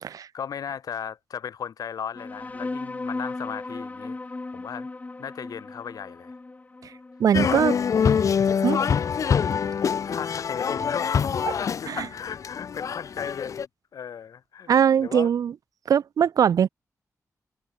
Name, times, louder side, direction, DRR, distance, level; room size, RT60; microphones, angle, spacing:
voice 1, 0.3-4.9 5.2-6.3 7.4-7.7 7.9-8.2 8.8-9.1 9.7-14.7 15.0-15.3, left 8 dB, 85° left, 3.7 m, -36 dB
sound 1, 2.1-9.1, left 3 dB, 25° left, 1.8 m, -37 dB
voice 2, 7.2-7.7 8.6-8.8 11.9-12.0 14.7-15.5 15.9-16.7, right 8 dB, 75° right, 0.4 m, -21 dB
sound 2, 7.3-13.7, left 7 dB, 60° left, 0.6 m, -25 dB
wide cardioid pair, 120°, 6 cm